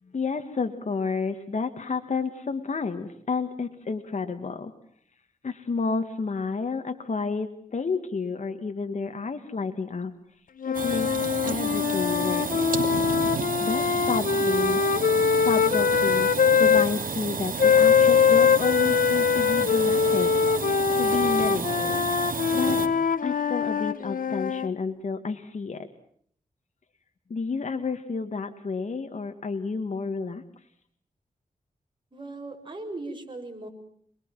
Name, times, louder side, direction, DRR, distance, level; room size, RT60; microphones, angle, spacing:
voice 1, 0.1-4.7 5.4-10.1 10.7-11.1 11.4-12.7 13.6-14.8 15.4-16.3 16.6-22.0 22.5-22.8 23.2-25.9 27.3-30.4, left 4 dB, 55° left, 6 dB, 1.9 m, -30 dB
sound 1, 10.6-16.9 17.6-24.7, left 6 dB, 75° left, 1.0 m, -22 dB
Dell Dimension Workstation booting up, 10.7-22.9, right 5 dB, 70° right, 2.6 m, -32 dB
voice 2, 32.1-33.7, right 2 dB, 35° right, 3 dB, 6.8 m, -38 dB
27.5 x 21.5 x 7.6 m, 0.63 s
wide cardioid pair, 80°, 14 cm